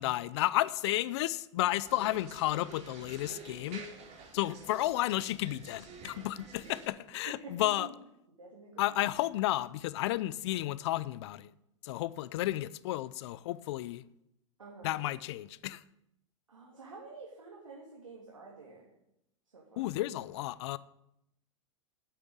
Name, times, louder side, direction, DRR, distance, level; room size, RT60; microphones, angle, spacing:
voice 1, 0.0-3.8 4.3-7.9 8.8-11.5 11.8-14.0 14.8-15.8 19.8-20.8, left 15 dB, 60° left, 0.6 m, -32 dB
sound 1, 1.8-6.9, right 4 dB, 40° right, 3.7 m, -49 dB
voice 2, 7.3-7.9 8.4-9.1 14.6-15.0 16.5-18.9 19.5-19.9, right 3 dB, 90° right, 2.9 m, -49 dB
8.7 x 8.5 x 8.9 m
hypercardioid pair, 105°, 16 cm